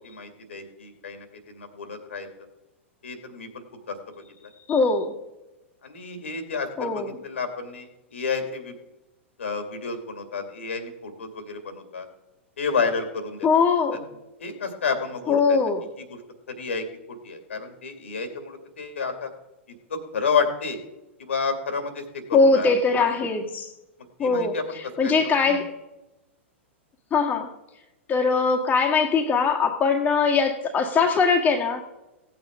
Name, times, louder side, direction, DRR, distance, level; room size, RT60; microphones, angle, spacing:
voice 1, 0.0-2.3 3.0-4.5 5.8-8.7 9.4-12.1 12.6-13.6 14.4-15.6 16.0-16.2 16.5-19.3 19.9-20.8 21.2-22.7 24.2-24.8 25.0-25.3, left 5 dB, 75° left, 6 dB, 2.4 m, -30 dB
voice 2, 4.7-5.2 6.8-7.1 13.4-14.0 15.3-15.8 22.3-23.7 24.2-24.5 25.0-25.7 27.1-27.5 28.1-31.8, left 4 dB, 25° left, 0 dB, 1.8 m, -21 dB
17.5 x 8.7 x 3.7 m, 0.97 s
figure-of-eight pair, 100°, 7 cm